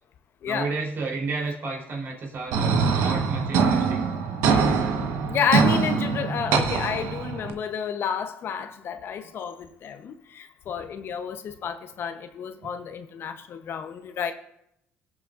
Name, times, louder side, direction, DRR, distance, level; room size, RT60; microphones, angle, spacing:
voice 1, 0.4-4.1 9.2-9.3 12.6-12.7, right 3 dB, 55° right, -1 dB, 3.5 m, -32 dB
sound 1, 2.5-7.5, right 5 dB, 85° right, 1.2 m, -23 dB
voice 2, 5.3-14.3, left 7 dB, 55° left, 8 dB, 0.9 m, -30 dB
20.5 x 7.4 x 2.5 m, 0.76 s
cardioid pair, 90°, 5 cm